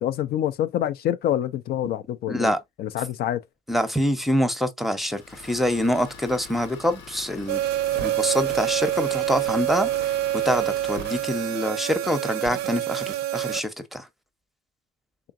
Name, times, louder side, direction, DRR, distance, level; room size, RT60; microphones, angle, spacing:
voice 1, 0.0-3.4, left 11 dB, 65° left, 0.4 m, -26 dB
voice 2, 2.3-2.6 3.7-7.6 7.9-10.1 10.4-14.1, equal, ahead, 0.7 m, -25 dB
Idling, 5.1-11.6, left 5 dB, 90° left, 1.2 m, -44 dB
sound 1, 7.5-13.6, right 13 dB, 80° right, 0.4 m, -26 dB
3.7 x 3.6 x 2.5 m
cardioid pair, 110°, 17 cm